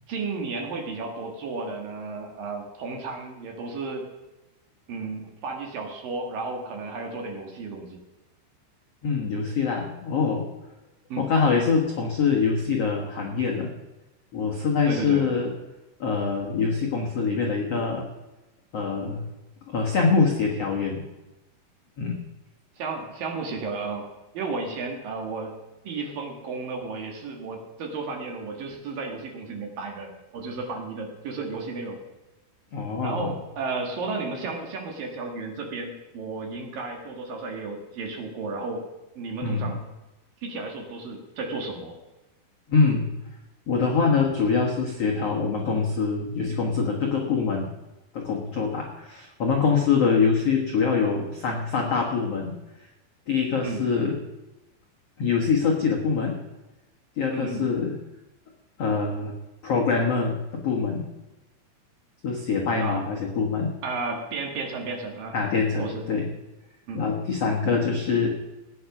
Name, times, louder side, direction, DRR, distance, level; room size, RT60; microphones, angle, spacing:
voice 1, 0.1-4.1 4.9-8.0 11.1-11.3 14.9-15.3 22.8-24.1 24.3-25.5 25.8-32.0 33.0-38.8 39.2-39.8 40.4-42.0 53.6-53.8 57.3-57.7 62.8-63.0 63.8-65.4 65.8-66.0 66.9-67.0, right 3 dB, 55° right, 2 dB, 3.0 m, -33 dB
voice 2, 9.0-10.5 11.2-13.7 14.3-15.5 16.0-18.1 18.7-19.3 19.7-21.0 22.0-22.2 32.7-33.3 39.4-39.8 42.7-43.1 43.7-47.7 48.1-52.6 53.3-54.2 55.2-56.4 57.2-57.9 58.8-59.3 59.6-61.0 62.2-63.7 65.3-66.3 66.9-68.3, left 5 dB, 85° left, -1 dB, 1.3 m, -24 dB
17.5 x 9.6 x 6.0 m, 1.0 s
omnidirectional pair, 5.4 m